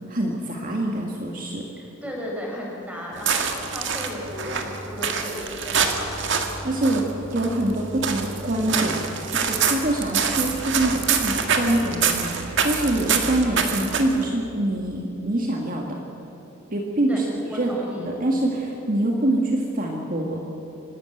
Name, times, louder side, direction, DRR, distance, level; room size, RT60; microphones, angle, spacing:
voice 1, 0.1-1.7 6.6-16.0 16.7-17.7 18.0-20.4, right 1 dB, 40° right, 0 dB, 1.8 m, -25 dB
voice 2, 1.8-6.1 6.4-6.7 17.1-18.1, left 1 dB, 5° right, -2 dB, 5.2 m, -35 dB
sound 1, 3.1-14.3, right 6 dB, 60° right, 1.9 m, -26 dB
26.5 x 12.5 x 9.1 m, 3.0 s
head